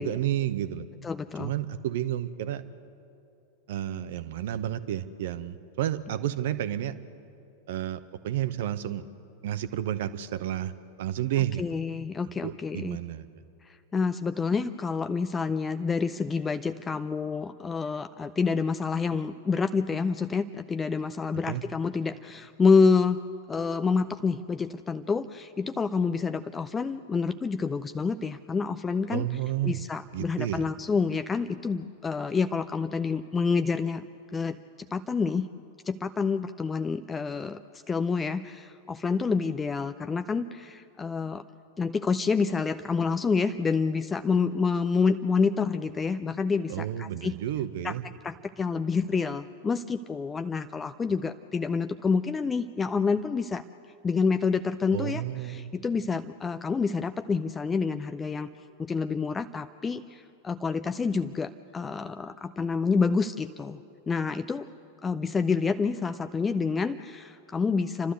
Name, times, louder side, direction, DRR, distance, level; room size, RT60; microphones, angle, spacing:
voice 1, 0.0-0.9 1.4-2.6 3.7-6.9 7.7-9.0 9.4-10.7 11.0-11.6 12.4-13.3 21.5-21.6 29.1-29.8 30.1-30.7 46.7-48.0 54.9-55.7, right 12 dB, 55° right, 13 dB, 0.9 m, -31 dB
voice 2, 1.0-1.5 11.6-13.0 13.9-23.2 23.5-29.3 29.6-34.0 34.3-34.6 34.9-35.5 35.9-37.6 37.9-41.4 41.8-47.3 47.8-48.0 48.2-53.6 54.0-58.5 58.8-64.7 65.0-68.1, left 5 dB, 15° left, 10 dB, 0.5 m, -28 dB
29.5 x 13.0 x 8.0 m, 2.6 s
figure-of-eight pair, 90°, 0 cm